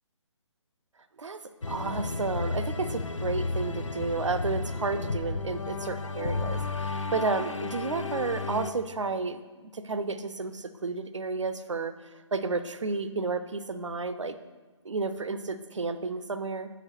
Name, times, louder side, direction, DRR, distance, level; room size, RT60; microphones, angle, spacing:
sound 1, 1.6-8.7, left 3 dB, 80° left, 0.5 m, -32 dB
voice 1, 1.7-11.9 12.3-14.4 14.8-16.7, right 4 dB, 75° right, 11 dB, 0.5 m, -32 dB
7.2 x 5.0 x 4.3 m, 1.3 s
figure-of-eight pair, 140°, 16 cm